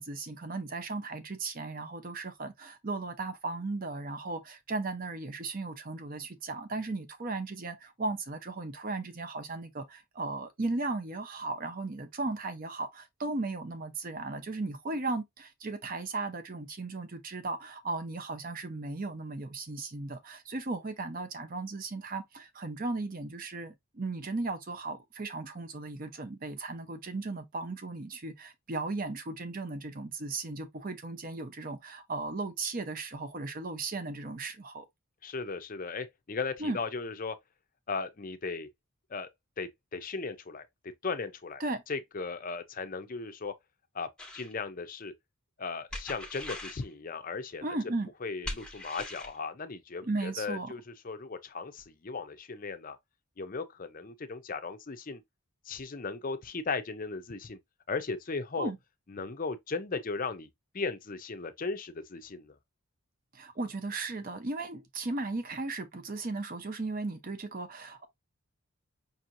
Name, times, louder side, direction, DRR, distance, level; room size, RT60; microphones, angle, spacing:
voice 1, 0.0-34.9 36.6-36.8 41.6-41.8 47.6-48.1 50.0-50.7 58.6-58.8 63.3-68.1, right 3 dB, 40° right, 0.7 m, -36 dB
voice 2, 35.2-37.4 37.9-38.7 39.1-39.3 39.6-40.7 41.0-43.5 43.9-44.1 44.3-45.1 45.6-47.6 48.2-53.0 53.4-55.2 55.7-57.6 57.9-58.7 59.1-60.5 60.7-62.6, left 4 dB, 40° left, 0.5 m, -37 dB
sound 1, 44.2-44.5 45.9-46.8 48.4-49.4, left 1 dB, 5° left, 0.7 m, -40 dB
5.4 x 2.8 x 2.5 m
head